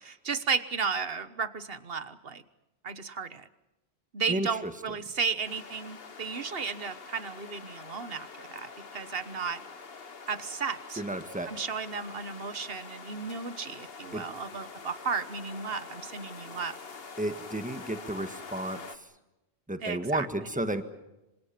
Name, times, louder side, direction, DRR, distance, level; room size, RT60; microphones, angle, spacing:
voice 1, 0.0-2.4 2.8-3.5 4.1-9.6 10.3-11.0 11.5-16.8 19.8-20.3, right 5 dB, 65° right, 13 dB, 1.5 m, -34 dB
voice 2, 4.3-4.7 11.0-11.5 14.1-14.3 17.2-18.8 19.7-20.8, right 1 dB, 5° right, 9 dB, 1.6 m, -32 dB
Autumn wind grabbs the trees, 5.4-19.0, left 4 dB, 65° left, 1.7 m, -46 dB
27.0 x 26.0 x 6.0 m, 0.96 s
omnidirectional pair, 1.1 m